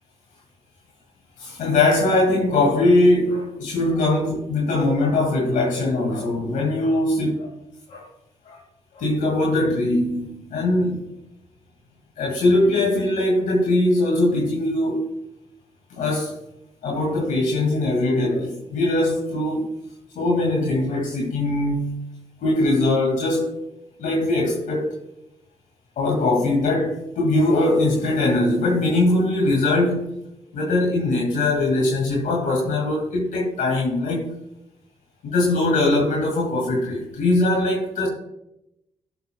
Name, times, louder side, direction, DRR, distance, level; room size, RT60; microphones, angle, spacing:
voice 1, 1.4-7.5 7.9-8.1 8.5-8.6 9.0-11.1 12.2-15.1 15.9-16.4 16.8-19.7 20.2-22.1 22.4-23.5 24.0-25.0 26.0-30.1 30.5-34.3 35.2-38.1, left 2 dB, 75° left, 2.2 m, -21 dB
16.0 x 6.8 x 2.3 m
hypercardioid pair, 40°, 14 cm